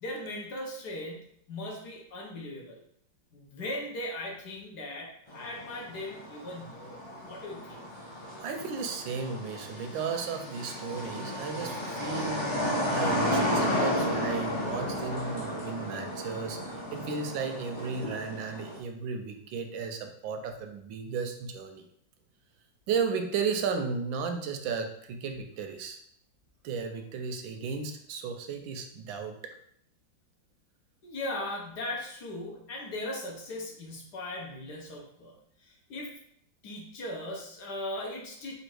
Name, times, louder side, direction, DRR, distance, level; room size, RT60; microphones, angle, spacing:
voice 1, 0.0-2.8 3.3-7.0 7.3-7.8 31.0-36.2 36.6-38.5, left 1 dB, 60° left, -2 dB, 1.5 m, -38 dB
sound 1, 5.3-18.8, equal, 30° left, 0.5 m, -33 dB
voice 2, 8.4-12.4 12.9-16.6 16.9-21.8 22.9-26.0 26.6-29.3, right 5 dB, 80° right, 6 dB, 1.3 m, -34 dB
4.3 x 2.6 x 4.6 m, 0.68 s
omnidirectional pair, 2.1 m